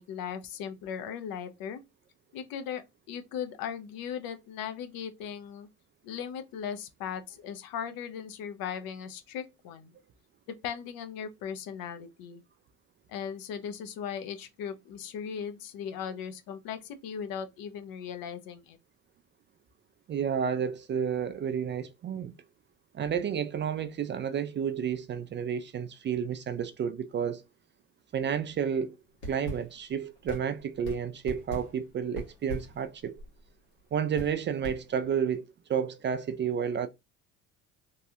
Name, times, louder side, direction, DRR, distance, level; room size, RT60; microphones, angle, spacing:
voice 1, 0.0-1.8 2.3-2.8 3.1-5.7 6.0-9.9 10.6-12.4 13.1-18.8, left 8 dB, 65° left, 0.8 m, -38 dB
voice 2, 20.1-22.3 22.9-27.4 28.1-29.0 29.3-33.2 33.9-36.9, right 7 dB, 30° right, 0.4 m, -31 dB
sound 1, 29.1-35.4, equal, 90° left, 1.5 m, -43 dB
3.1 x 2.3 x 2.7 m
supercardioid pair, 80°, 37 cm